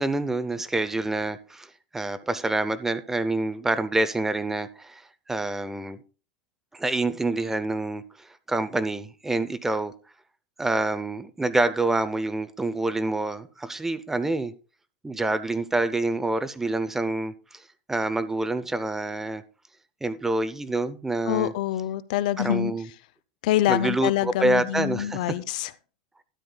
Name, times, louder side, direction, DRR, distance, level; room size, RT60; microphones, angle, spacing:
voice 1, 0.0-1.7 1.9-5.0 5.3-6.0 6.7-9.9 10.6-14.5 15.0-17.6 17.9-19.4 20.0-21.5 22.4-22.9 23.7-25.2, right 2 dB, 10° right, 0.6 m, -27 dB
voice 2, 21.3-22.7 23.4-25.7, left 13 dB, 70° left, 0.6 m, -25 dB
12.5 x 9.8 x 2.3 m
supercardioid pair, 135°, 4 cm